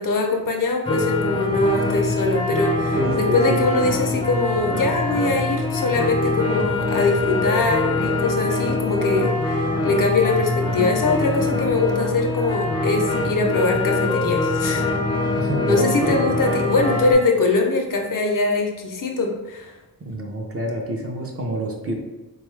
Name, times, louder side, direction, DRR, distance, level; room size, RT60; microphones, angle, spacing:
voice 1, 0.0-14.9 15.7-19.7, left 3 dB, 60° left, 2 dB, 0.6 m, -22 dB
sound 1, 0.9-17.1, left 2 dB, 15° left, 0.3 m, -23 dB
voice 2, 3.0-3.7 15.4-16.2 20.0-21.9, right 1 dB, 40° right, 0 dB, 0.5 m, -27 dB
3.7 x 2.3 x 3.1 m, 1.1 s
wide cardioid pair, 150°, 37 cm